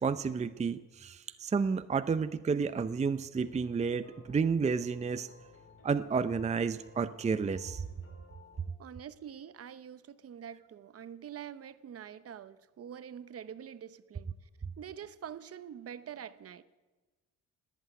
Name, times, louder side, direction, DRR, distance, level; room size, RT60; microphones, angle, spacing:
voice 1, 0.0-5.3 5.8-7.8, right 5 dB, 25° right, 0.6 m, -31 dB
sound 1, 3.4-8.7, left 4 dB, 45° left, 3.4 m, -58 dB
voice 2, 8.8-14.3 14.8-16.6, right 9 dB, 50° right, 0.8 m, -45 dB
19.0 x 8.2 x 9.1 m
cardioid pair, 90°, 30 cm